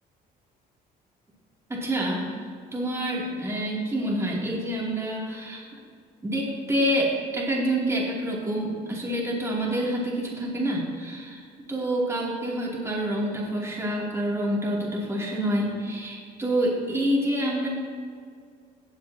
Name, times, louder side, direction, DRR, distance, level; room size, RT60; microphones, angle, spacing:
voice 1, 1.7-2.2 2.7-5.6 6.2-11.4 11.7-17.7, right 1 dB, 15° right, -4 dB, 2.7 m, -27 dB
16.5 x 7.5 x 2.9 m, 2.1 s
cardioid pair, 110°, 17 cm